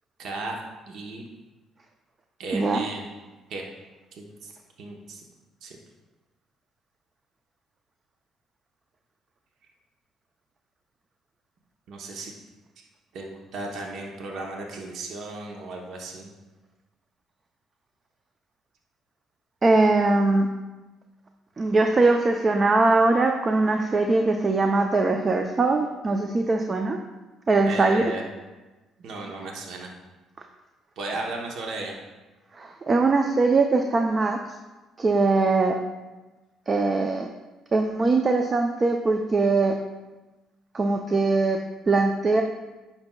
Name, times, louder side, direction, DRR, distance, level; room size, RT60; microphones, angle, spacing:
voice 1, 0.2-1.2 2.4-3.1 3.5-3.7 4.1-4.5 4.8-5.2 5.6-5.8 11.9-12.3 13.1-16.3 27.7-28.2 29.0-29.9 31.0-32.0, right 2 dB, 70° right, 1 dB, 0.9 m, -35 dB
voice 2, 19.6-20.5 21.6-27.0 27.5-28.0 32.6-34.4 35.0-35.8 36.7-37.3 37.7-39.7 40.7-41.6 41.9-42.4, right 3 dB, 35° right, 4 dB, 0.5 m, -21 dB
9.3 x 5.8 x 2.3 m, 1.2 s
cardioid pair, 85°, 0 cm